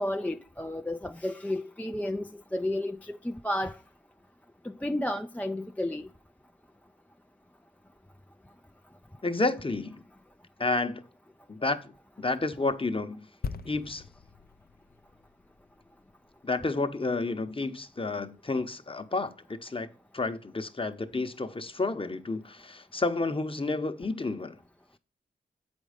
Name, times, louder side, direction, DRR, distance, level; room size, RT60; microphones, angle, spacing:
voice 1, 0.0-3.8 4.6-6.0, left 1 dB, 5° left, 0.4 m, -32 dB
voice 2, 9.2-10.0 10.6-11.0 11.5-11.9 12.2-13.3 13.6-14.0 16.4-19.9 20.1-24.6, left 3 dB, 25° left, 1.0 m, -30 dB
sound 1, 13.4-17.1 17.3-17.5, left 5 dB, 50° left, 0.6 m, -42 dB
7.8 x 5.3 x 5.0 m
cardioid pair, 50°, 20 cm